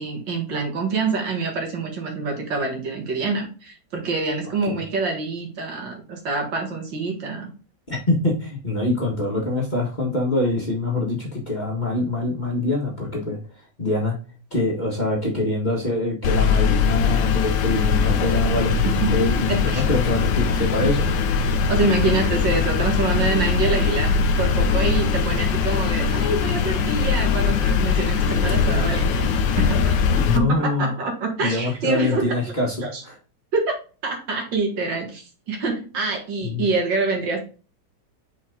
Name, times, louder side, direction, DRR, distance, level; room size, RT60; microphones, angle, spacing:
voice 1, 0.0-7.5 18.9-19.2 19.5-19.8 21.7-32.4 32.8-33.0 33.5-33.7 34.0-37.4, right 3 dB, 70° right, 2 dB, 2.4 m, -26 dB
voice 2, 7.9-13.4 13.8-14.2 14.5-21.1 30.1-30.9 31.4-33.2 36.4-36.6, left 2 dB, 25° left, -2 dB, 1.5 m, -24 dB
sound 1, 16.2-30.4, left 5 dB, 70° left, 1.5 m, -21 dB
5.9 x 4.8 x 3.7 m, 0.35 s
omnidirectional pair, 2.1 m